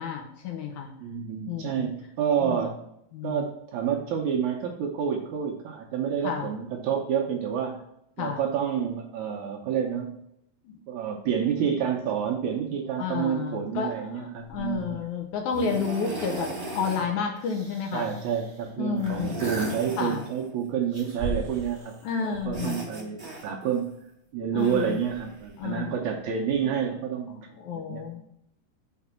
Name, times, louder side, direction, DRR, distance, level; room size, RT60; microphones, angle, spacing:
voice 1, 0.0-0.9 1.5-1.9 2.4-2.6 3.1-3.5 6.2-6.5 8.2-8.4 10.7-10.8 11.6-11.8 13.0-18.1 18.8-19.4 20.0-20.2 22.0-22.8 24.5-25.0 25.6-25.9 27.6-28.2, left 6 dB, 70° left, 3 dB, 2.0 m, -31 dB
voice 2, 1.0-2.8 3.2-7.8 8.2-10.1 10.9-15.0 17.9-22.0 22.2-23.2 23.4-23.9 24.3-27.5 27.7-28.2, right 8 dB, 75° right, 1 dB, 1.9 m, -29 dB
sound 1, 14.5-14.9 15.5-17.1 17.4-18.5 19.0-20.5 20.9-22.0 22.3-23.8 24.6-25.6 26.5-26.6, right 2 dB, 20° right, 1.6 m, -37 dB
5.9 x 4.5 x 5.6 m, 0.76 s
omnidirectional pair, 3.9 m